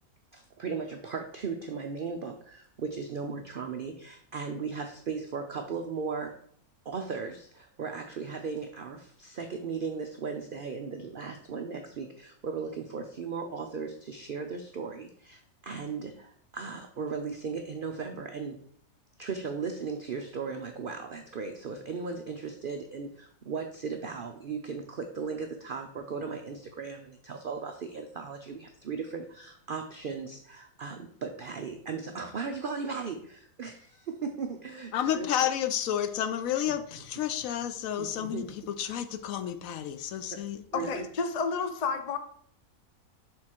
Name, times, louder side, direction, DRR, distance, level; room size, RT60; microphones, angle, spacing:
voice 1, 0.3-6.3 6.9-18.6 19.2-35.3 38.0-38.5 40.3-40.4 40.7-41.1, right 5 dB, 80° right, 5 dB, 0.4 m, -37 dB
voice 2, 34.9-40.6, left 10 dB, 70° left, 9 dB, 1.0 m, -31 dB
voice 3, 40.7-42.2, left 5 dB, 85° left, 8 dB, 0.3 m, -30 dB
6.3 x 3.8 x 4.4 m, 0.62 s
omnidirectional pair, 1.6 m